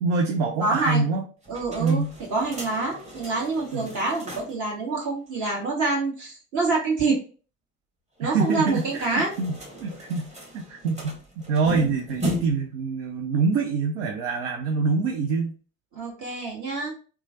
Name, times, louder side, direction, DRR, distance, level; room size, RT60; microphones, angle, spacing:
voice 1, 0.0-1.2 1.8-2.1 3.7-3.9 8.2-15.6, right 4 dB, 70° right, 3 dB, 0.5 m, -25 dB
voice 2, 0.6-1.1 1.5-2.0 2.3-7.2 8.2-9.3 15.9-16.9, right 3 dB, 50° right, -3 dB, 1.5 m, -26 dB
sound 1, 1.4-4.7 5.0-5.1 5.3-5.4 8.2-12.8, equal, 20° right, 1.1 m, -37 dB
3.0 x 2.3 x 2.7 m, 0.37 s
figure-of-eight pair, 50°, 38 cm